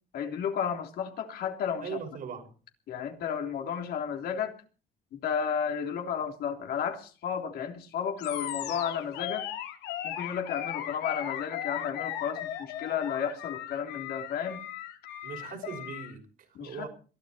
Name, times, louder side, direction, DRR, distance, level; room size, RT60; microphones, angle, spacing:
voice 1, 0.1-2.0 2.9-4.5 5.1-9.5 10.0-14.6 16.6-16.9, left 7 dB, 65° left, 3.5 m, -33 dB
voice 2, 1.8-2.5 15.2-16.9, right 6 dB, 55° right, 5.7 m, -40 dB
Animal, 8.2-16.1, left 11 dB, 90° left, 2.7 m, -37 dB
22.0 x 13.0 x 4.4 m
cardioid pair, 110°, 17 cm